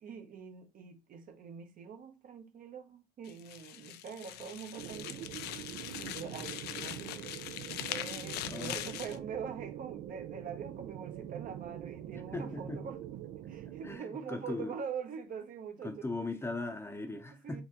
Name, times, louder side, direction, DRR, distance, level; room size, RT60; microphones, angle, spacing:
voice 1, 0.0-5.3 6.0-13.1 13.5-16.0 17.4-17.6, right 6 dB, 55° right, 0.8 m, -44 dB
sound 1, 3.2-9.2, left 12 dB, 75° left, 0.4 m, -42 dB
sound 2, 4.8-14.0, right 12 dB, 80° right, 0.4 m, -44 dB
voice 2, 12.3-12.9 13.8-14.7 15.8-17.6, left 2 dB, 15° left, 0.6 m, -38 dB
4.2 x 2.6 x 2.9 m
cardioid pair, 110°, 17 cm